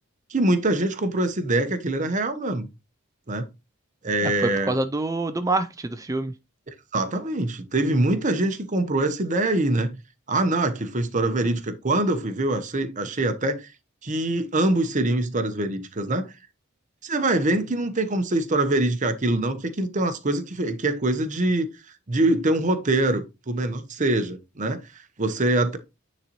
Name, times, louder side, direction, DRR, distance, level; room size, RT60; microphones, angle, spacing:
voice 1, 0.3-2.7 3.3-3.5 4.0-4.7 6.9-10.0 10.3-13.7 14.0-16.3 17.0-21.7 22.1-24.8 25.2-25.8, right 2 dB, 35° right, 0.9 m, -24 dB
voice 2, 4.2-6.3, right 2 dB, 15° right, 0.4 m, -26 dB
9.4 x 4.2 x 3.0 m
head